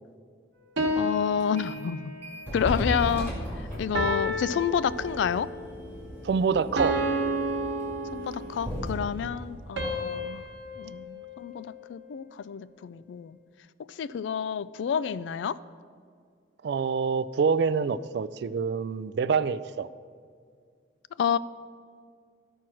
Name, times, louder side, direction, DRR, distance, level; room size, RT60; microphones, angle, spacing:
sound 1, 0.8-2.3 3.9-5.6 6.8-8.7 9.8-12.1, right 1 dB, 85° right, 1.2 m, -31 dB
voice 1, 0.9-2.1 2.5-5.5 8.1-10.4 10.8-13.4 13.9-15.6 21.2-21.4, left 7 dB, 80° left, 17 dB, 0.3 m, -29 dB
sound 2, 1.4-1.9 2.2-10.7, equal, 10° left, 2.3 m, -37 dB
voice 2, 6.2-7.0 9.2-9.4 16.6-19.9, right 5 dB, 60° right, 15 dB, 0.3 m, -26 dB
13.0 x 4.5 x 6.1 m, 2.1 s
head